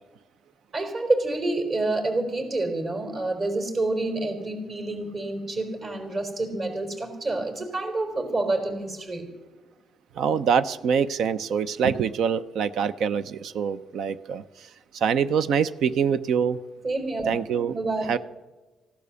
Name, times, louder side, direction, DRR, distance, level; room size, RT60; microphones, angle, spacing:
voice 1, 0.7-9.3 16.8-17.4 17.7-18.1, right 2 dB, 45° right, 5 dB, 4.2 m, -28 dB
voice 2, 10.2-14.4 14.9-16.6 17.3-17.7 18.1-18.2, right 7 dB, 75° right, 13 dB, 0.7 m, -24 dB
15.5 x 12.0 x 7.0 m, 1.2 s
cardioid pair, 90°, 0 cm